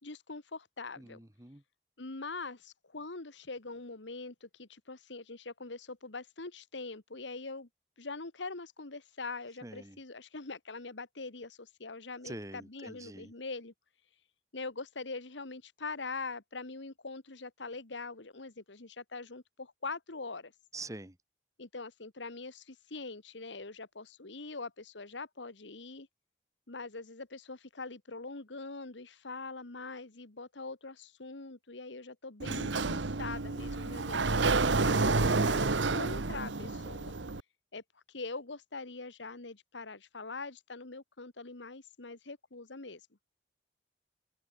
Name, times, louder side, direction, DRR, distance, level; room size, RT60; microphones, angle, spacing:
voice 1, 0.0-1.2 2.0-7.7 8.0-13.7 14.5-20.5 21.6-26.1 26.7-35.7 35.9-37.1 37.7-37.8 38.1-43.0, left 3 dB, 80° left, 1.7 m, -43 dB
voice 2, 1.0-1.6 9.6-10.0 12.2-13.3 20.7-21.2, right 2 dB, 20° right, 1.4 m, -45 dB
Sliding door, 32.4-37.4, right 3 dB, 85° right, 1.2 m, -29 dB
open air
head